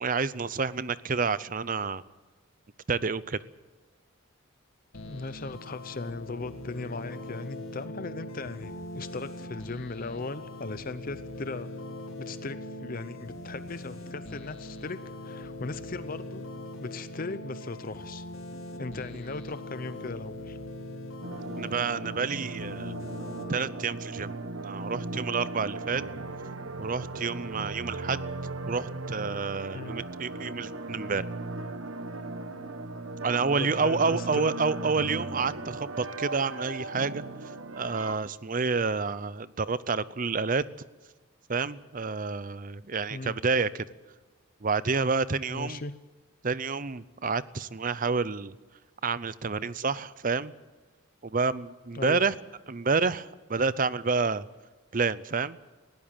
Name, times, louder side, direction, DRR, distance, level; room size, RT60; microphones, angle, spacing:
voice 1, 0.0-2.0 2.9-3.4 21.6-22.9 23.5-26.0 26.8-28.2 28.7-31.3 33.2-40.6 41.5-43.8 44.6-45.8 46.4-48.5 49.0-50.5 51.2-52.3 52.7-54.5 54.9-55.6, right 4 dB, 40° right, 17 dB, 0.6 m, -29 dB
sound 1, 4.9-23.6, left 1 dB, 75° left, 2.3 m, -41 dB
voice 2, 5.1-11.7 12.2-15.0 15.2-16.4 16.8-18.2 18.8-20.6 29.7-29.9 33.6-34.6 43.1-43.3 45.5-45.9 51.9-52.2, left 3 dB, 45° left, 13 dB, 0.7 m, -38 dB
sound 2, 21.2-38.2, right 2 dB, 80° right, 1.4 m, -37 dB
20.0 x 17.0 x 9.1 m, 1.3 s
head